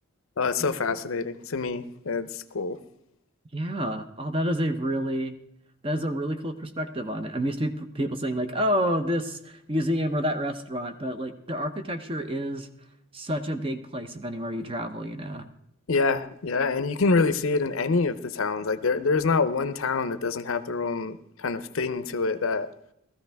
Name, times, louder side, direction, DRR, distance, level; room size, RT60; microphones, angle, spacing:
voice 1, 0.4-2.8 15.9-22.7, left 4 dB, 70° left, 13 dB, 0.6 m, -26 dB
voice 2, 3.5-5.3 5.8-12.7 13.1-15.5, equal, 25° right, 9 dB, 0.7 m, -29 dB
16.0 x 14.0 x 3.5 m, 0.77 s
head